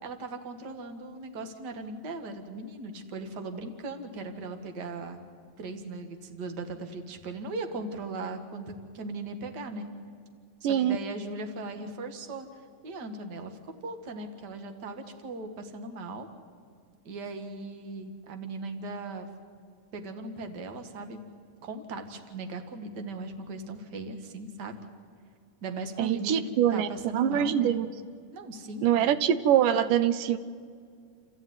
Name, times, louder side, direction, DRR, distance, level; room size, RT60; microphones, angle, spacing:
voice 1, 0.0-5.2 5.6-9.9 10.6-12.5 12.8-16.3 17.0-19.3 19.9-21.2 21.6-24.7 25.6-27.8 28.3-29.0, right 2 dB, 40° right, 6 dB, 1.8 m, -38 dB
voice 2, 10.6-11.0 26.0-27.9 28.8-30.4, right 10 dB, 80° right, 13 dB, 2.3 m, -24 dB
29.5 x 14.0 x 9.5 m, 2.2 s
omnidirectional pair, 3.8 m